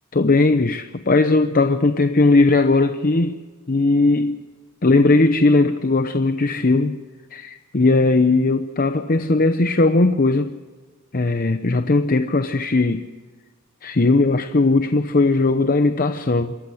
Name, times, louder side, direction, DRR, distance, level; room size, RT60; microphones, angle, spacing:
voice 1, 0.1-3.4 3.7-4.4 4.8-7.0 7.3-10.5 11.1-13.1 13.8-16.6, left 3 dB, 40° left, 0.7 m, -18 dB
26.5 x 14.5 x 7.8 m
head